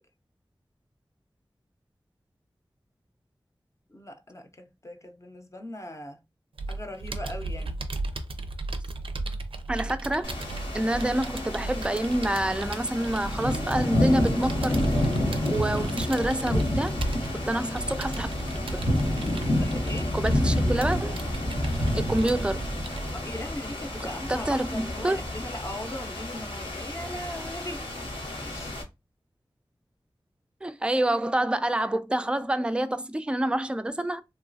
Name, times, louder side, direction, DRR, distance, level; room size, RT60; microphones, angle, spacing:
voice 1, 3.9-6.2 6.7-7.8 17.4-17.7 19.5-20.1 23.1-27.9 28.4-28.8, left 1 dB, 35° left, 0.6 m, -39 dB
Computer keyboard, 6.6-23.1, right 2 dB, 80° right, 0.4 m, -36 dB
voice 2, 9.7-10.4 10.7-14.8 15.5-17.0 17.5-18.3 18.6-18.9 20.1-21.2 21.9-22.6 24.3-25.2 30.6-34.2, right 1 dB, 10° right, 0.3 m, -27 dB
sound 1, 10.2-28.8, left 1 dB, 85° left, 1.1 m, -29 dB
3.0 x 2.3 x 2.6 m
wide cardioid pair, 45°, 9 cm